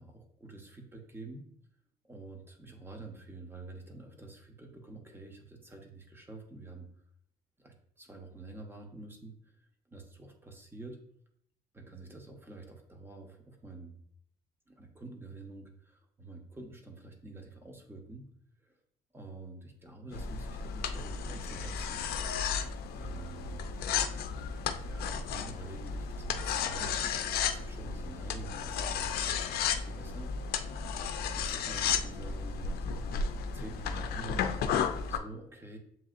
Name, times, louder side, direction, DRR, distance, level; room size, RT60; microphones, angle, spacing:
voice 1, 0.0-1.5 2.0-6.9 7.6-11.0 11.7-14.0 14.7-18.2 18.6-18.8 19.1-22.0 22.9-23.6 24.8-30.3 31.1-33.1 33.5-34.5 35.1-35.8, right 3 dB, 15° right, 3 dB, 0.9 m, -48 dB
sound 1, 20.1-35.2, left 6 dB, 65° left, 0.5 m, -33 dB
7.4 x 2.7 x 2.5 m, 0.68 s
cardioid pair, 110°, 17 cm